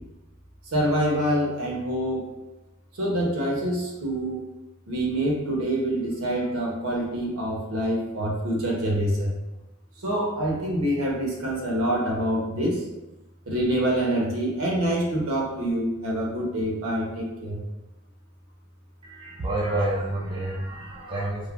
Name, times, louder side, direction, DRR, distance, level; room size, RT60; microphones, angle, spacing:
voice 1, 0.7-2.3 3.0-4.4 4.9-9.4 10.0-12.8 13.5-17.6, right 1 dB, 75° right, -3 dB, 0.8 m, -26 dB
voice 2, 19.0-21.5, right 1 dB, 25° right, -5 dB, 0.3 m, -29 dB
3.1 x 2.1 x 2.4 m, 1.0 s
head